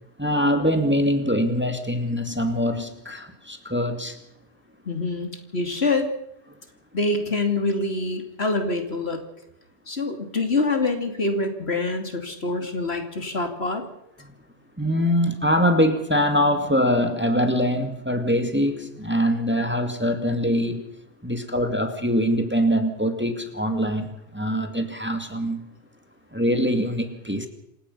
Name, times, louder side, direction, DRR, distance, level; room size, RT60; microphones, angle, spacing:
voice 1, 0.2-4.2 14.2-14.4 14.8-20.8 21.2-25.7 26.3-27.5, equal, 10° right, 6 dB, 2.3 m, -23 dB
voice 2, 4.9-6.1 6.9-9.2 9.9-13.8, left 3 dB, 70° left, 5 dB, 3.1 m, -25 dB
27.5 x 17.0 x 5.7 m, 0.80 s
omnidirectional pair, 1.1 m